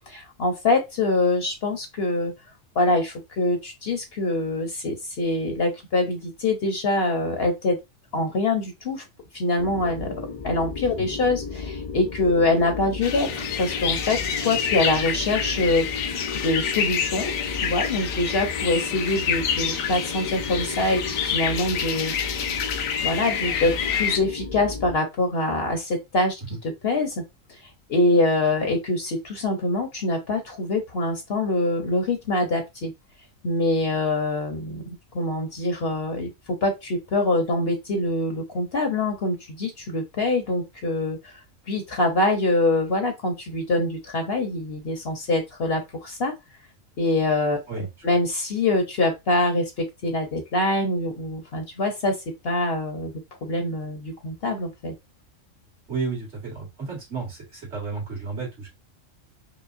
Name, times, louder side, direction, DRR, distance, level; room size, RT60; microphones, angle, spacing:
voice 1, 0.1-2.3 2.7-7.8 8.1-9.0 9.3-10.1 10.4-15.8 16.4-17.3 17.6-22.1 23.0-27.2 27.9-32.9 33.4-36.3 36.6-41.4 41.7-46.3 47.0-52.2 52.4-53.1 53.4-54.9, left 2 dB, 55° left, 0.9 m, -24 dB
sound 1, 9.6-25.0, left 4 dB, 35° left, 0.6 m, -35 dB
sound 2, 13.0-24.2, left 7 dB, 90° left, 1.0 m, -28 dB
voice 2, 55.9-58.7, right 4 dB, 55° right, 2.0 m, -32 dB
4.9 x 2.1 x 2.5 m
omnidirectional pair, 1.4 m